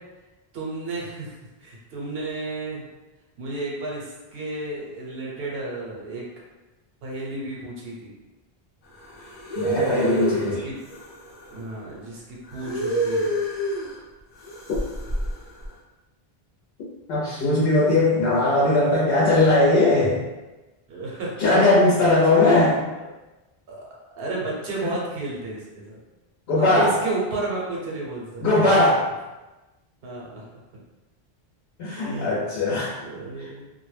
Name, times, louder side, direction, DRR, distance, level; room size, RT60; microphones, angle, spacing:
voice 1, 0.5-1.3 1.6-2.8 3.4-6.3 7.0-8.1 9.9-10.8 11.5-13.4 20.9-21.4 21.9-22.0 23.0-23.1 23.7-23.8 24.1-26.0 26.6-28.9 30.0-30.4 32.0-32.4 33.0-33.7, right 2 dB, 75° right, -3 dB, 0.8 m, -32 dB
sound 1, 8.9-11.6 12.5-14.0 14.4-15.7, right 1 dB, 50° left, 0.6 m, -28 dB
voice 2, 9.6-10.6 17.1-20.2 21.4-22.8 24.8-24.9 26.5-26.9 28.4-29.0 31.8-33.0 33.4-33.5, left 2 dB, 75° left, -7 dB, 0.8 m, -19 dB
2.1 x 2.0 x 3.1 m, 1.1 s
omnidirectional pair, 1.0 m